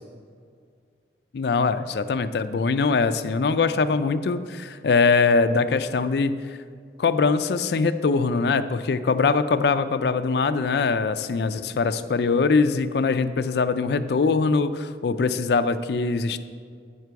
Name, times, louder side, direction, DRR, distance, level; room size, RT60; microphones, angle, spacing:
voice 1, 1.3-6.4 7.0-16.4, left 4 dB, 60° left, 11 dB, 0.4 m, -22 dB
9.3 x 5.9 x 4.6 m, 2.1 s
head